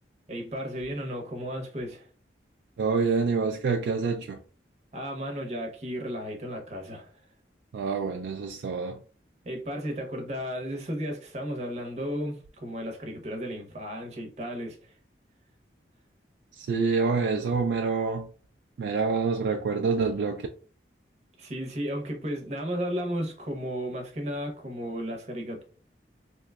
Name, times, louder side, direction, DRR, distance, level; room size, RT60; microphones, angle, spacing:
voice 1, 0.3-2.1 4.9-7.1 9.4-14.9 21.4-25.6, equal, 35° right, 0.7 m, -34 dB
voice 2, 2.8-4.4 7.7-9.0 16.6-18.3 18.8-20.5, right 4 dB, 75° right, 0.3 m, -27 dB
3.0 x 2.2 x 3.4 m
head